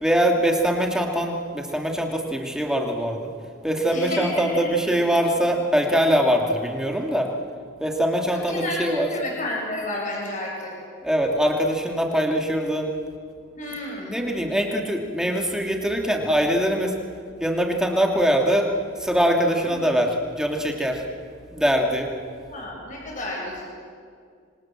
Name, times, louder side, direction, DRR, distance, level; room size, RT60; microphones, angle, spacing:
voice 1, 0.0-3.3 3.6-7.3 7.8-9.1 11.0-12.9 14.0-16.9 17.4-18.7 19.0-21.0 21.5-22.1, equal, 5° right, 1 dB, 2.7 m, -22 dB
voice 2, 3.9-4.7 8.3-10.7 13.5-14.2 19.6-19.9 22.5-23.6, left 1 dB, 40° left, -2 dB, 7.8 m, -31 dB
27.0 x 26.0 x 7.7 m, 2.2 s
head